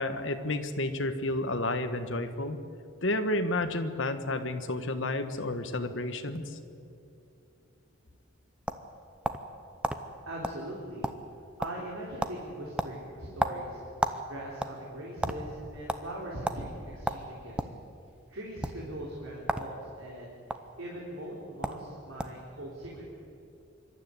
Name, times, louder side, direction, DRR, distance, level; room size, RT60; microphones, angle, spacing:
voice 1, 0.0-2.6 3.0-6.6, left 2 dB, 60° left, 8 dB, 1.4 m, -31 dB
sound 1, 8.1-9.5 9.8-10.0 10.4-10.6 10.9-11.4 11.6-11.9 12.2-12.4 12.8-14.2 14.5-15.4 15.9-16.0 16.4-16.6 17.0-17.8 18.5-18.7 19.4-19.7 20.0-20.6 21.3-21.4 21.6-21.8 22.2-22.4, right 1 dB, 5° right, 0.7 m, -31 dB
voice 2, 10.3-11.1 11.6-13.8 14.2-17.5 18.3-23.1, right 1 dB, 80° right, -3 dB, 3.7 m, -40 dB
25.5 x 12.5 x 9.5 m, 2.6 s
head